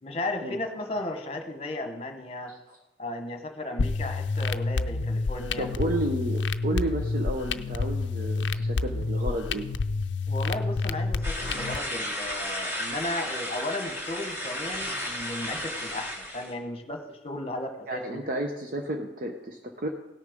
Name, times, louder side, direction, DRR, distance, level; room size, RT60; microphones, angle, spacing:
voice 1, 0.0-2.5 3.0-5.7 10.3-18.2, left 1 dB, 30° left, 5 dB, 1.2 m, -35 dB
sound 1, 3.8-11.8, left 3 dB, 70° left, 0.5 m, -29 dB
voice 2, 5.6-9.6 17.9-19.9, right 1 dB, 50° right, 3 dB, 0.9 m, -32 dB
sound 2, 11.2-16.5, equal, 15° right, 2.2 m, -34 dB
17.0 x 6.6 x 5.1 m, 0.96 s
head